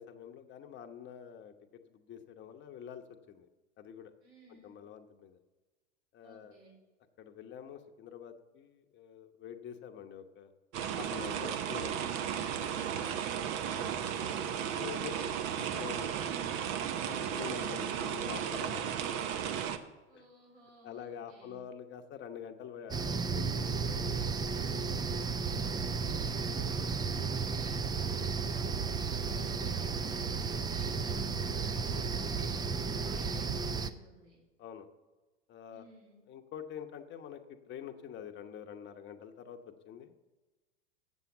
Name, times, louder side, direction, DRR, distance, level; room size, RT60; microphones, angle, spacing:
voice 1, 0.0-1.5 1.9-3.5 3.8-4.1 4.5-5.4 6.1-6.6 7.2-10.5 10.9-13.3 13.6-13.8 14.7-16.4 17.0-18.9 20.1-20.3 20.8-24.3 26.1-26.7 31.9-32.4 34.6-34.9 35.5-35.8 36.3-40.1, left 8 dB, 35° left, 7 dB, 0.9 m, -47 dB
voice 2, 4.2-4.8 6.2-6.8 13.0-14.1 20.1-21.6 26.4-32.4 33.0-34.4 35.7-36.2, right 1 dB, 80° right, -4 dB, 4.1 m, -58 dB
sound 1, 10.7-19.8, right 8 dB, 50° right, 0.8 m, -35 dB
sound 2, 22.9-33.9, right 5 dB, 15° right, 0.4 m, -33 dB
7.8 x 7.2 x 7.0 m, 1.2 s
hypercardioid pair, 85°, 32 cm